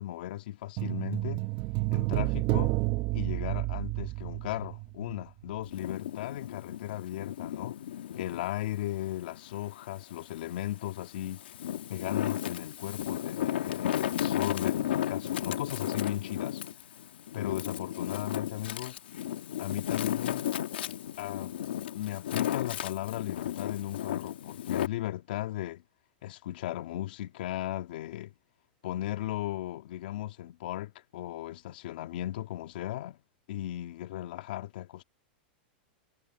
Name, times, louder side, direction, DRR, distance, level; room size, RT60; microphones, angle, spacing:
voice 1, 0.0-1.5 1.9-2.8 3.1-7.8 8.2-11.5 11.9-16.6 17.3-19.0 19.6-20.5 21.2-21.5 21.9-25.8 26.2-28.3 28.8-33.2 33.5-35.0, left 14 dB, 70° left, 2.3 m, -36 dB
sound 1, 0.8-5.2 5.5-5.6, right 21 dB, 40° right, 1.4 m, -30 dB
Wind, 5.6-8.5 9.0-10.3 10.9-24.9, left 11 dB, 90° left, 1.9 m, -34 dB
supercardioid pair, 140°, 5 cm